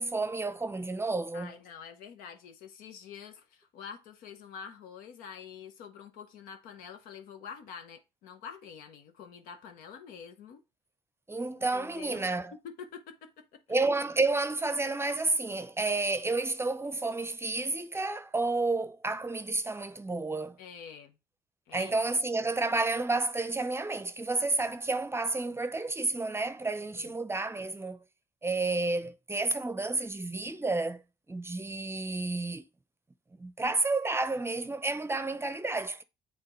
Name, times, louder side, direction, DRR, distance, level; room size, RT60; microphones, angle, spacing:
voice 1, 0.0-1.5 11.3-12.5 13.7-20.6 21.7-28.0 28.4-31.0 31.3-32.6 33.4-36.0, right 3 dB, 15° right, 0.6 m, -30 dB
voice 2, 1.3-10.6 11.7-12.2 12.5-13.6 20.6-21.2 21.7-22.0 26.9-27.1, left 7 dB, 80° left, 1.0 m, -47 dB
8.6 x 3.6 x 3.1 m
supercardioid pair, 60°, 15 cm